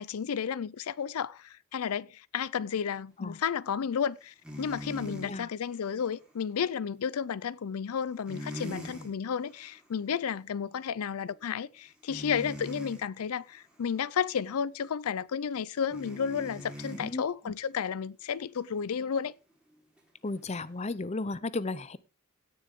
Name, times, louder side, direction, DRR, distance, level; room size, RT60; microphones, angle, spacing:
voice 1, 0.0-19.3, left 7 dB, 85° left, 0.4 m, -32 dB
sound 1, 4.4-5.4 8.3-9.1 9.5-9.8 12.1-13.0 15.9-17.2 20.3-20.4, equal, 5° right, 3.3 m, -41 dB
voice 2, 5.1-5.5 17.0-17.2 20.2-22.0, left 3 dB, 30° left, 0.6 m, -34 dB
17.0 x 7.0 x 3.6 m
head